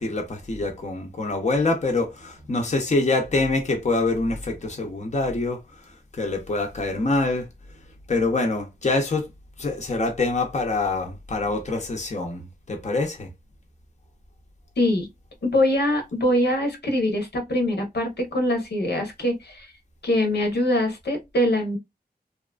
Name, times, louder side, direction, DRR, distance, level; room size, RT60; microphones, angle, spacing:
voice 1, 0.0-5.6 6.1-7.5 8.1-9.3 9.6-13.3, left 2 dB, 45° left, 0.7 m, -25 dB
voice 2, 14.8-15.1 15.4-19.7 20.0-21.8, left 1 dB, 85° left, 0.9 m, -23 dB
2.7 x 2.4 x 2.2 m
wide cardioid pair, 60°, 17 cm